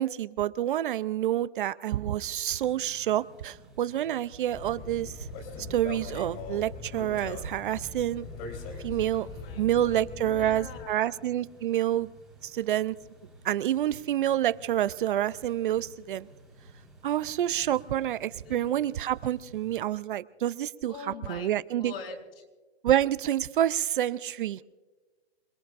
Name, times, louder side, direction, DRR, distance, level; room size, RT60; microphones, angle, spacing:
voice 1, 0.0-5.2 5.7-8.3 8.8-9.3 9.6-12.1 12.4-13.0 13.4-16.3 17.0-21.9 22.8-24.6, right 12 dB, 50° right, 15 dB, 0.5 m, -28 dB
sound 1, 2.5-19.8, right 3 dB, ahead, 2.0 m, -54 dB
sound 2, 4.5-10.9, left 4 dB, 35° left, 3.7 m, -41 dB
voice 2, 9.1-11.2 14.2-14.3 18.4-18.7 20.9-22.4, left 5 dB, 60° left, 0 dB, 6.2 m, -44 dB
27.0 x 19.0 x 2.5 m, 1.3 s
hypercardioid pair, 150°, 32 cm